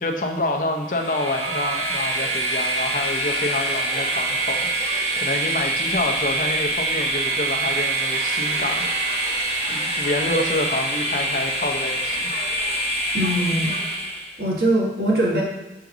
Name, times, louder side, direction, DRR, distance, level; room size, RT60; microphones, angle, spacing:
voice 1, 0.0-12.3, left 2 dB, 50° left, 3 dB, 0.7 m, -28 dB
Train, 0.9-14.4, right 2 dB, 35° right, 1.0 m, -25 dB
voice 2, 13.1-13.8 14.4-15.4, right 1 dB, 65° right, -3 dB, 1.8 m, -21 dB
6.5 x 3.9 x 6.0 m, 1.0 s
head